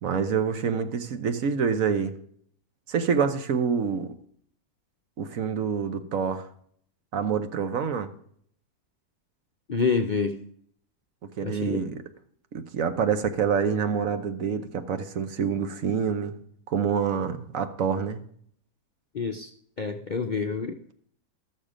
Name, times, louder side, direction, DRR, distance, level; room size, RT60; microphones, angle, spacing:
voice 1, 0.0-2.2 2.9-4.1 5.2-6.5 7.1-8.1 11.4-11.9 12.5-16.4 16.7-18.2, right 6 dB, 65° right, 1.3 m, -27 dB
voice 2, 9.7-10.4 11.4-11.8 19.1-19.5 19.8-20.8, left 5 dB, 50° left, 0.6 m, -27 dB
13.5 x 6.6 x 5.0 m
omnidirectional pair, 1.6 m